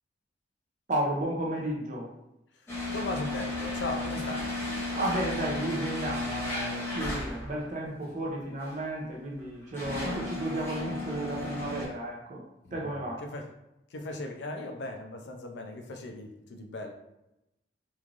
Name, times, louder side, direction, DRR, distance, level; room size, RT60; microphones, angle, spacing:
voice 1, 0.9-2.1 5.0-12.4 12.7-13.2, right 1 dB, 40° right, -2 dB, 0.4 m, -33 dB
voice 2, 2.6-4.5 12.6-13.5 13.9-16.9, left 2 dB, 80° left, 4 dB, 0.4 m, -38 dB
sound 1, 2.7-7.7 8.6-8.7 9.4-11.9, left 2 dB, 15° left, 0.7 m, -34 dB
3.0 x 2.4 x 2.4 m, 0.90 s
head